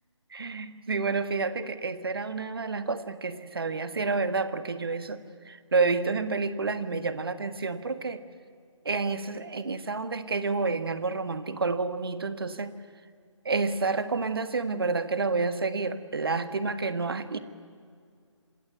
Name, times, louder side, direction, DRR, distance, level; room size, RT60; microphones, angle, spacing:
voice 1, 0.3-5.2 5.4-8.2 8.8-12.7 13.4-17.4, right 4 dB, 50° right, 11 dB, 1.6 m, -29 dB
26.5 x 21.0 x 9.3 m, 2.2 s
figure-of-eight pair, 155°, 16 cm